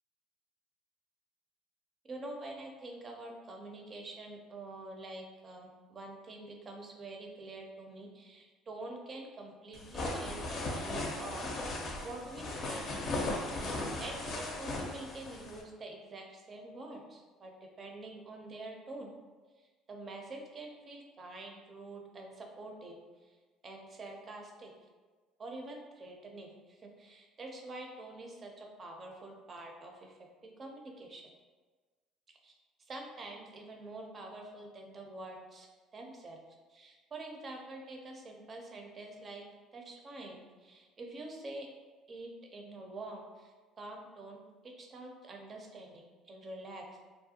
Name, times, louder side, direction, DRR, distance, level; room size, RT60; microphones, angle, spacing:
voice 1, 2.1-11.4 12.0-12.8 14.0-17.5 17.8-19.1 19.9-23.0 23.6-24.7 25.4-30.1 30.6-31.2 32.4-32.5 32.9-35.7 35.9-36.4 36.7-39.4 39.7-41.7 42.1-43.5 43.8-44.4 44.8-46.8, right 2 dB, 40° right, 1 dB, 0.5 m, -46 dB
sound 1, 9.7-15.6, left 2 dB, 50° left, 0.5 m, -37 dB
2.4 x 2.1 x 2.7 m, 1.3 s
supercardioid pair, 75°, 0 cm